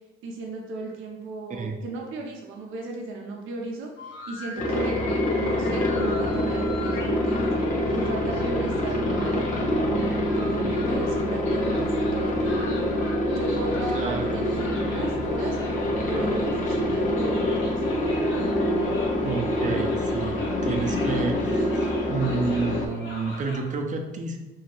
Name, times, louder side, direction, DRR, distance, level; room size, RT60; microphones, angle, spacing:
voice 1, 0.2-7.5 7.9-12.6 13.3-14.6 14.9-15.6 16.1-18.0, right 2 dB, 90° right, 0 dB, 0.6 m, -35 dB
sound 1, 4.0-23.6, left 2 dB, 80° left, 0.9 m, -42 dB
Aircraft, 4.6-22.9, left 1 dB, 40° left, 0.7 m, -25 dB
voice 2, 13.9-14.3 19.2-24.4, right 4 dB, 40° right, 4 dB, 0.5 m, -30 dB
2.9 x 2.7 x 2.9 m, 1.1 s
cardioid pair, 90°, 20 cm